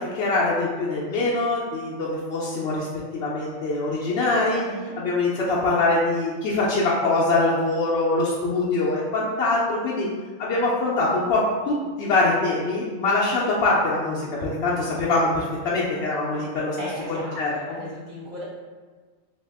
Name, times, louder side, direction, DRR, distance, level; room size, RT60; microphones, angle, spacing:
voice 1, 0.0-2.9 3.1-4.7 5.0-10.1 10.4-16.8 17.1-17.5, left 2 dB, 65° left, -6 dB, 0.7 m, -23 dB
voice 2, 4.6-4.9 16.7-18.4, equal, 40° right, -9 dB, 1.2 m, -36 dB
2.8 x 2.7 x 3.3 m, 1.4 s
omnidirectional pair, 1.4 m